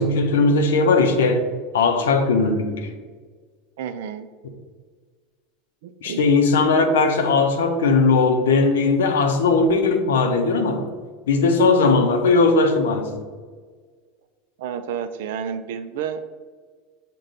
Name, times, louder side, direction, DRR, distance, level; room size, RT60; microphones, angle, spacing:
voice 1, 0.0-1.5 1.7-2.9 6.0-10.9 11.3-13.2, left 3 dB, 85° left, 6 dB, 0.5 m, -18 dB
voice 2, 3.8-4.3 5.8-6.2 14.6-16.3, right 8 dB, 75° right, 10 dB, 0.4 m, -30 dB
6.3 x 2.2 x 3.7 m, 1.5 s
hypercardioid pair, 95°, 0 cm